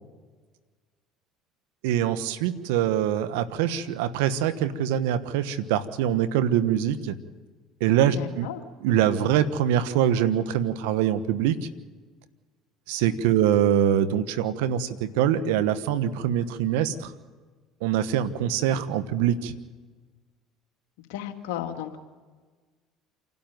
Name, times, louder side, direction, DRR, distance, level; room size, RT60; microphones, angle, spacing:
voice 1, 1.8-7.2 7.8-8.5 8.8-11.6 12.9-17.1 17.8-19.5, right 10 dB, 80° right, 13 dB, 1.1 m, -24 dB
voice 2, 8.1-8.6 13.0-13.5 21.1-22.0, left 11 dB, 80° left, 5 dB, 2.0 m, -35 dB
27.5 x 12.5 x 9.3 m, 1.4 s
hypercardioid pair, 75°, 0 cm